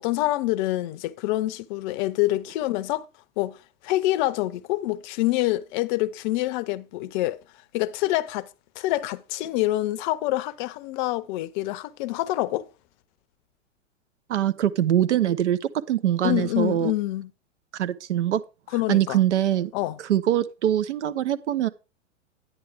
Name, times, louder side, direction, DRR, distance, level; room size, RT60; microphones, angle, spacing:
voice 1, 0.0-3.0 3.4-3.6 3.8-7.4 7.7-8.5 8.8-12.7 16.2-17.3 18.7-19.2 19.7-20.0, left 17 dB, 40° left, 0.7 m, -26 dB
voice 2, 14.3-15.6 15.9-16.9 17.8-18.4 18.9-19.7 20.1-21.7, right 11 dB, 65° right, 1.0 m, -23 dB
10.0 x 9.6 x 3.4 m
figure-of-eight pair, 105°, 37 cm